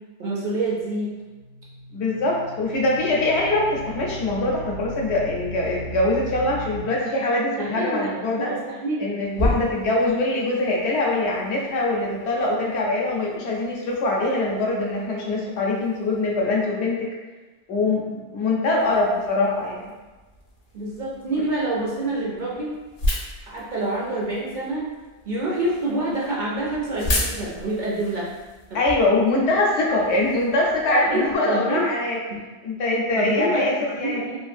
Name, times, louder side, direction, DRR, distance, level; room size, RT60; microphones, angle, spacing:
voice 1, 0.2-1.1 7.6-9.2 20.7-22.8 23.4-24.9 25.2-28.4 28.7-28.8 30.9-31.8 32.3-32.4 33.1-34.4, right 2 dB, 55° right, -5 dB, 0.6 m, -27 dB
sound 1, 1.0-6.8 9.3-10.1, equal, 75° right, 0.9 m, -32 dB
voice 2, 1.9-8.5 9.0-17.1 17.7-19.9 28.7-32.2 32.6-34.2, left 2 dB, 80° left, -2 dB, 0.9 m, -23 dB
sound 2, 18.7-31.4, left 1 dB, 55° left, 0.5 m, -34 dB
2.8 x 2.4 x 2.5 m, 1.2 s
omnidirectional pair, 1.1 m